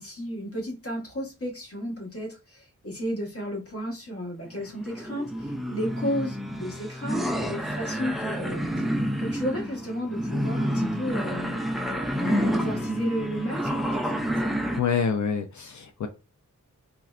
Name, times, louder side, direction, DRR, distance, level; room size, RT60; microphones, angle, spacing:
voice 1, 0.0-8.8 9.2-11.6 12.2-14.5, equal, 45° left, 1.3 m, -33 dB
sound 1, 4.6-14.8, equal, ahead, 0.4 m, -29 dB
voice 2, 14.8-16.1, left 6 dB, 65° left, 0.4 m, -26 dB
3.7 x 2.1 x 2.4 m
wide cardioid pair, 70°, 32 cm